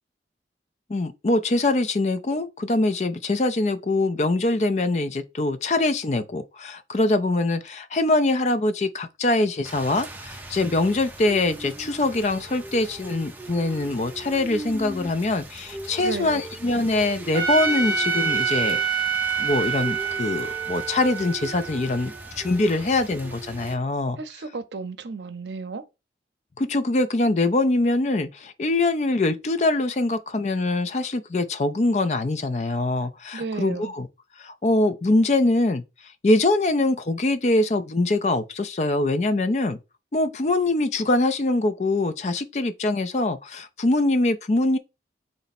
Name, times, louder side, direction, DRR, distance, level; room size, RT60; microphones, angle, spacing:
voice 1, 0.9-18.8 19.4-24.2 26.6-34.1 34.4-35.8 36.2-39.8 40.1-44.8, left 2 dB, 40° left, 0.4 m, -23 dB
Rain, 9.6-23.7, right 2 dB, 10° right, 0.5 m, -39 dB
voice 2, 16.0-16.4 24.2-25.8 33.3-33.9, right 4 dB, 85° right, 0.6 m, -33 dB
Trumpet, 17.3-22.5, right 6 dB, 25° right, 1.1 m, -27 dB
4.0 x 3.2 x 4.1 m
head